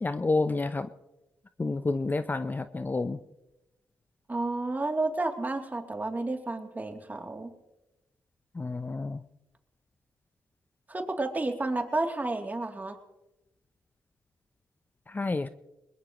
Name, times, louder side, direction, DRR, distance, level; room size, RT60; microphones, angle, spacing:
voice 1, 0.0-0.9 1.6-3.2 8.5-9.2 15.1-15.5, left 3 dB, 25° left, 11 dB, 0.8 m, -29 dB
voice 2, 4.3-7.5 10.9-13.0, right 2 dB, 25° right, 3 dB, 3.0 m, -31 dB
21.5 x 21.0 x 3.1 m, 0.97 s
supercardioid pair, 55°, 7 cm